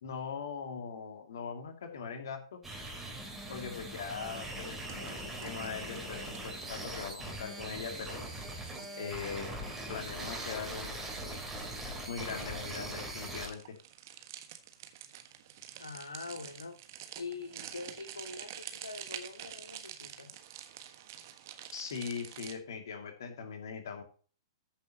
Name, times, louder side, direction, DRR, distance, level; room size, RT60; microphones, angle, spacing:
voice 1, 0.0-2.6 3.5-8.2 8.9-11.5 12.1-13.8 21.7-24.0, left 6 dB, 55° left, 5 dB, 2.5 m, -41 dB
sound 1, 2.6-13.5, right 1 dB, 10° right, 3.5 m, -41 dB
sound 2, 4.9-22.5, right 11 dB, 45° right, 1.4 m, -49 dB
voice 2, 15.8-16.8 17.2-20.4, left 3 dB, 70° left, 6 dB, 2.2 m, -44 dB
14.5 x 7.2 x 2.9 m, 0.38 s
figure-of-eight pair, 110°, 2 cm